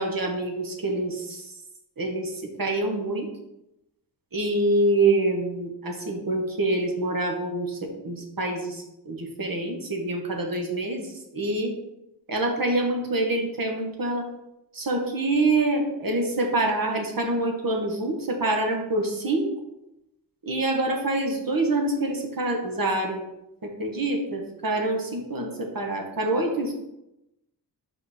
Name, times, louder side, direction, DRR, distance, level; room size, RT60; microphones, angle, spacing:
voice 1, 0.0-1.5 2.0-3.3 4.3-11.7 12.3-14.2 14.7-19.5 20.4-23.2 23.6-26.7, right 2 dB, 55° right, 2 dB, 1.4 m, -26 dB
5.2 x 5.1 x 4.3 m, 0.91 s
cardioid pair, 60°, 42 cm